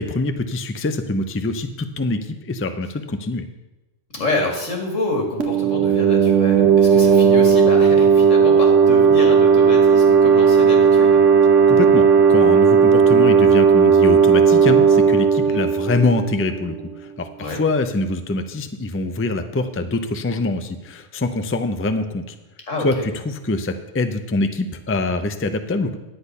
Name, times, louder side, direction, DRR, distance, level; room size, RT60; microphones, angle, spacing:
voice 1, 0.0-3.4 11.7-22.4 22.8-26.0, left 2 dB, 15° left, 8 dB, 0.4 m, -24 dB
voice 2, 4.1-11.2 15.4-15.6 17.4-17.6 22.7-23.0, left 2 dB, 90° left, 1 dB, 2.4 m, -27 dB
sound 1, 5.4-16.8, right 6 dB, 80° right, 1.3 m, -14 dB
10.5 x 8.3 x 5.4 m, 1.0 s
omnidirectional pair, 1.3 m